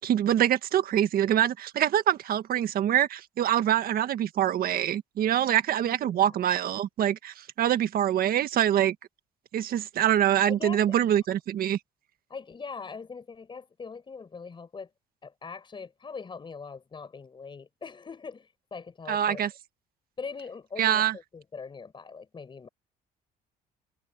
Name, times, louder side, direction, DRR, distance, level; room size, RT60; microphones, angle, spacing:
voice 1, 0.0-8.9 9.5-11.8 19.1-19.5 20.8-21.1, right 11 dB, 60° right, 1.7 m, -25 dB
voice 2, 5.8-6.5 10.5-10.9 12.3-14.9 15.2-19.5 20.2-22.7, left 5 dB, 30° left, 5.1 m, -41 dB
cardioid pair, 110°, 17 cm